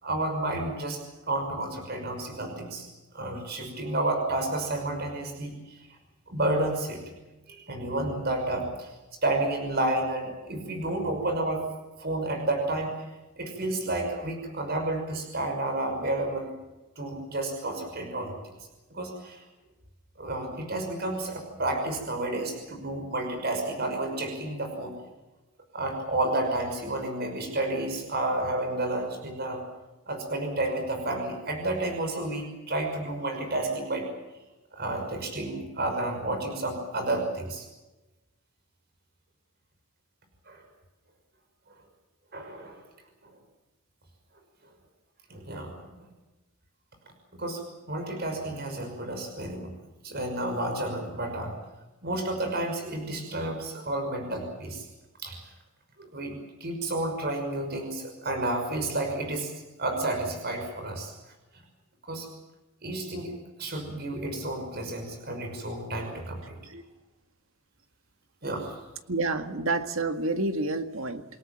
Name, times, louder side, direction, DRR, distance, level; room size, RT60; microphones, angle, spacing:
voice 1, 0.0-2.9 3.1-5.9 6.3-7.0 7.5-8.9 9.2-11.7 12.0-13.1 13.4-16.5 17.0-18.6 18.9-19.4 20.2-24.9 25.7-29.6 30.1-34.1 34.7-37.7 40.4-40.6 42.3-42.8 43.2-43.3 45.3-46.0 47.3-49.7 50.0-51.5 52.0-54.9 55.2-55.5 56.0-59.5 59.8-61.1 62.1-62.3 62.8-63.3 63.6-66.6 68.4-68.7, right 2 dB, 50° right, 5 dB, 5.8 m, -31 dB
voice 2, 69.1-71.2, right 2 dB, 75° right, 7 dB, 1.9 m, -29 dB
28.0 x 18.5 x 7.5 m, 1.1 s
head